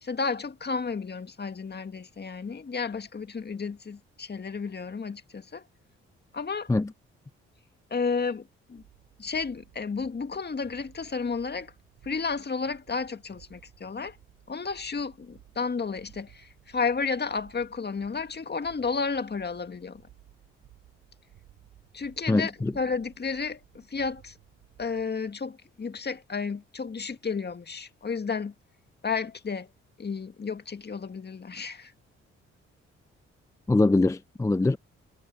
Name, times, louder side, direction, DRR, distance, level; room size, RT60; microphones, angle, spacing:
voice 1, 0.0-5.6 6.3-6.7 7.9-8.8 9.2-11.7 12.0-14.2 14.5-20.0 21.9-24.3 24.8-28.5 29.0-29.7 30.0-31.9, left 5 dB, 35° left, 2.0 m, -32 dB
sound 1, 8.8-25.0, right 13 dB, 75° right, 7.5 m, -57 dB
voice 2, 22.3-22.7 33.7-34.8, left 2 dB, 10° left, 0.5 m, -23 dB
hypercardioid pair, 50°, 29 cm